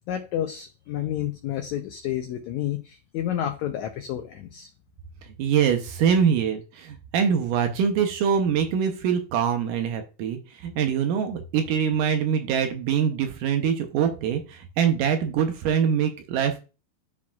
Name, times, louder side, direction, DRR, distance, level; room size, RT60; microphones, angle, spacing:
voice 1, 0.1-4.7, left 11 dB, 85° left, 6 dB, 1.6 m, -30 dB
voice 2, 5.4-16.6, right 7 dB, 75° right, 6 dB, 2.2 m, -24 dB
13.0 x 4.8 x 2.3 m, 0.32 s
omnidirectional pair, 4.2 m